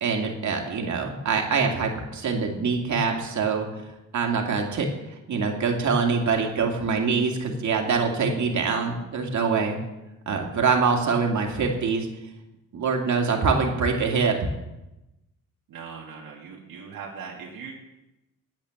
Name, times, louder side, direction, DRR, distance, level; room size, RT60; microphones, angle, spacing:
voice 1, 0.0-3.7 4.1-4.9 5.3-9.8 10.3-12.1 12.7-14.3, right 5 dB, 55° right, 2 dB, 2.3 m, -24 dB
voice 2, 15.7-17.8, right 5 dB, 75° right, -2 dB, 1.7 m, -40 dB
9.0 x 8.4 x 7.1 m, 0.97 s
cardioid pair, 75°, 35 cm